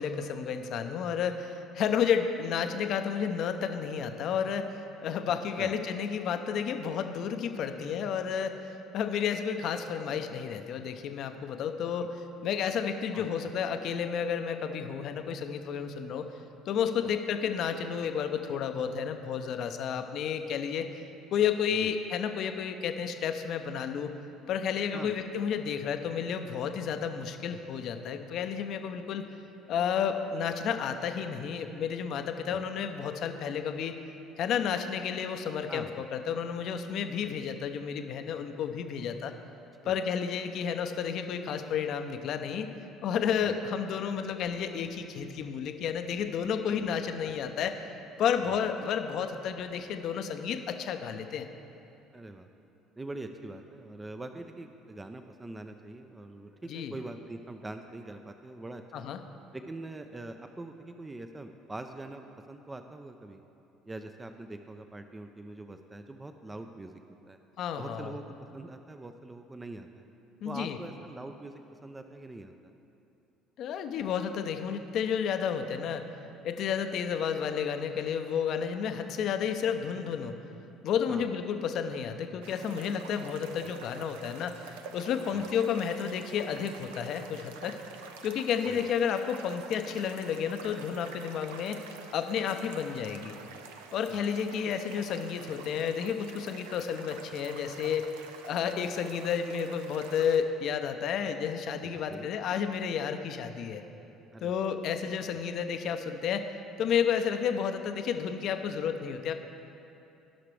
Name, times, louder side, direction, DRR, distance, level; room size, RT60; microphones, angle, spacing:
voice 1, 0.0-16.3 16.7-20.9 21.3-24.1 24.5-29.2 29.7-33.9 34.4-39.3 39.8-42.7 43.0-47.7 48.2-51.5 56.7-56.9 58.9-59.2 67.6-68.1 70.4-70.8 73.6-76.0 76.4-80.3 80.8-84.7 84.9-87.8 88.2-93.3 93.9-98.1 98.4-103.8 104.4-106.5 106.8-109.3, left 7 dB, 60° left, 7 dB, 0.6 m, -31 dB
voice 2, 52.1-52.5 53.0-59.1 59.5-63.4 63.8-67.0 67.3-67.4 67.8-70.1 70.4-72.5 81.1-81.3 83.6-83.7 85.3-85.5 88.7-88.9 94.1-94.2 94.6-94.7 101.8-102.3 104.3-104.6 105.3-105.4, right 2 dB, 20° right, 7 dB, 0.5 m, -43 dB
sound 1, 82.4-100.4, right 5 dB, 80° right, 0.5 m, -48 dB
16.5 x 5.8 x 3.3 m, 2.8 s
hypercardioid pair, 60°, 0 cm